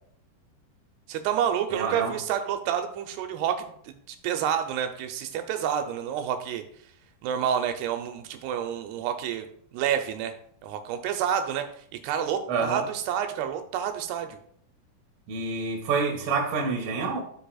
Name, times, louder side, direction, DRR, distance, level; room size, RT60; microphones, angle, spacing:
voice 1, 1.1-3.6 3.8-6.6 7.2-10.3 10.6-11.7 12.0-14.4, right 9 dB, 90° right, 6 dB, 2.8 m, -29 dB
voice 2, 1.7-2.1 12.5-12.8 15.3-17.2, right 4 dB, 55° right, 0 dB, 2.1 m, -27 dB
14.5 x 4.8 x 2.3 m, 0.65 s
omnidirectional pair, 4.6 m